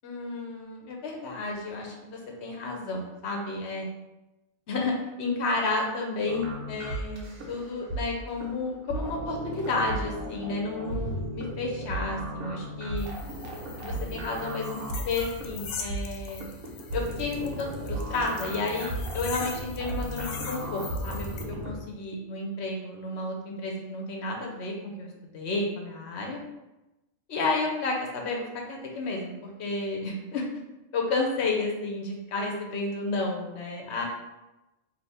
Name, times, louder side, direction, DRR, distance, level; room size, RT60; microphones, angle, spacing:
voice 1, 0.0-3.9 4.7-13.1 13.8-14.8 15.1-16.4 16.9-25.1 25.3-26.4 27.3-30.5 30.9-34.0, left 3 dB, 60° left, 0 dB, 0.8 m, -31 dB
sound 1, 6.3-21.8, right 1 dB, 90° right, 1.2 m, -35 dB
sound 2, 13.0-21.4, left 5 dB, 85° left, 1.1 m, -42 dB
3.4 x 2.8 x 4.1 m, 0.99 s
omnidirectional pair, 1.5 m